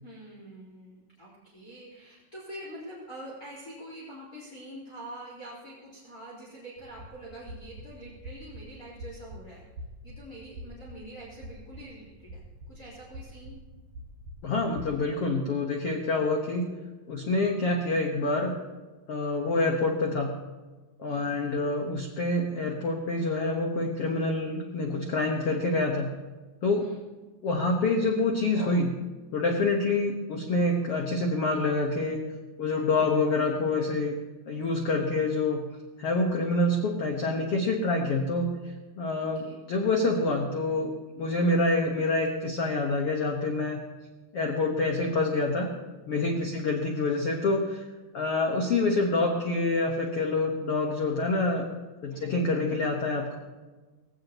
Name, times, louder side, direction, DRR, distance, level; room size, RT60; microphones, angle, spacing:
voice 1, 0.0-9.6 10.0-12.4 12.7-13.6 21.1-21.3 26.8-27.0 34.8-35.1 39.2-39.6 46.3-46.6 52.1-52.3, right 1 dB, 25° left, -5 dB, 4.1 m, -45 dB
sound 1, 6.8-14.9, equal, 60° right, 6.2 m, -46 dB
voice 2, 14.4-16.7 17.1-18.6 19.1-20.3 21.0-26.1 26.6-26.8 27.4-28.9 29.3-32.2 32.6-34.2 34.5-35.6 36.0-40.9 41.2-43.8 44.3-45.7 46.1-47.9 48.1-51.7 52.0-53.4, left 2 dB, 55° left, 1 dB, 1.8 m, -27 dB
20.5 x 16.0 x 3.0 m, 1.3 s
omnidirectional pair, 4.1 m